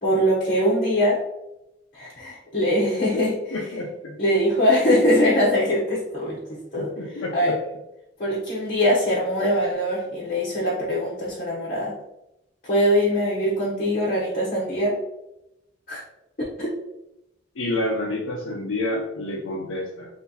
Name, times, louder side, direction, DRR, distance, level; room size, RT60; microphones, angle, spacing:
voice 1, 0.0-1.2 1.9-3.3 4.2-6.9 7.3-7.5 8.2-11.9 12.6-14.9 15.9-16.0 16.6-16.7, equal, 45° left, -6 dB, 0.9 m, -22 dB
voice 2, 3.5-4.1 6.8-7.6 17.6-20.1, left 2 dB, 90° left, -3 dB, 0.6 m, -28 dB
3.8 x 3.2 x 2.8 m, 0.90 s
head